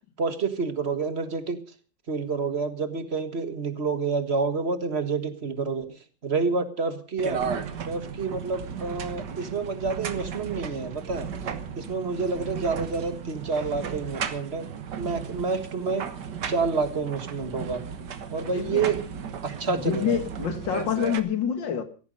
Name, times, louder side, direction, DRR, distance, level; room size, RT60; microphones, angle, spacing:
voice 1, 0.2-1.6 2.1-7.4 7.8-11.3 11.8-14.7 15.0-16.1 16.5-17.8 18.3-19.0 19.4-20.2, right 4 dB, 35° right, 1.7 m, -28 dB
sound 1, 7.2-21.2, right 7 dB, 65° right, 1.8 m, -35 dB
voice 2, 18.5-18.9 19.7-21.8, left 8 dB, 80° left, 2.4 m, -27 dB
16.5 x 14.0 x 5.4 m
omnidirectional pair, 2.0 m